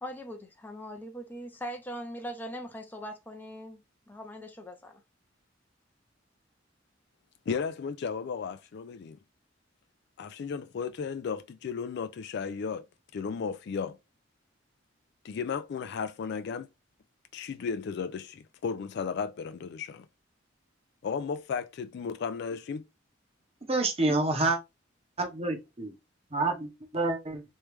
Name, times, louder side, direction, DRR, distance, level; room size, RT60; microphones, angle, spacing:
voice 1, 0.0-3.8 4.1-5.0, equal, 10° left, 0.7 m, -41 dB
voice 2, 7.5-9.2 10.2-12.8 13.1-14.0 15.2-16.7 17.3-20.1 21.0-22.8, left 6 dB, 60° left, 0.3 m, -34 dB
voice 3, 23.7-24.6 25.2-25.9 26.3-27.4, right 2 dB, 30° right, 0.9 m, -28 dB
3.2 x 3.1 x 3.2 m
head